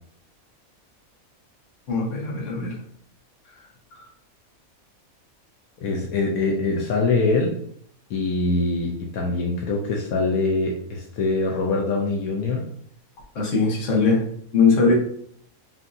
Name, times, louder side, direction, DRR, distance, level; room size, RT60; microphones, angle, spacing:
voice 1, 1.9-2.7 13.3-14.2 14.5-14.9, left 4 dB, 60° left, -1 dB, 1.4 m, -20 dB
voice 2, 5.8-7.5 8.1-12.7 14.9-15.0, left 3 dB, 85° left, 0 dB, 1.1 m, -23 dB
5.7 x 2.8 x 2.6 m, 0.63 s
omnidirectional pair, 1.5 m